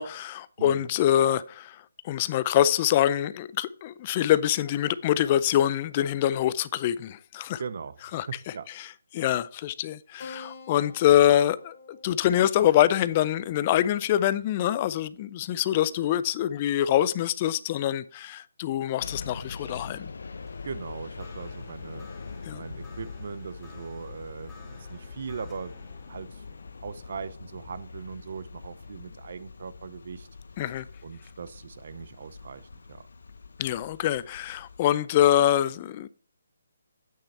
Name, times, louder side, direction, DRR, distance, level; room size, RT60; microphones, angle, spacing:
voice 1, 0.0-1.8 2.0-7.6 8.1-8.3 9.1-11.7 12.0-20.1 22.5-22.6 30.6-30.8 33.6-36.1, left 11 dB, 30° left, 0.4 m, -24 dB
voice 2, 0.6-0.9 7.6-8.7 20.6-22.1 22.5-24.5 24.9-25.7 26.1-26.4 26.8-30.3 31.0-33.1, right 5 dB, 55° right, 0.6 m, -39 dB
Keyboard (musical), 10.2-15.2, left 4 dB, 55° left, 1.8 m, -49 dB
sound 1, 19.0-34.9, left 4 dB, 75° left, 0.9 m, -43 dB
sound 2, 20.3-29.6, left 4 dB, 5° left, 2.1 m, -56 dB
8.5 x 6.4 x 4.2 m
hypercardioid pair, 155°, 0 cm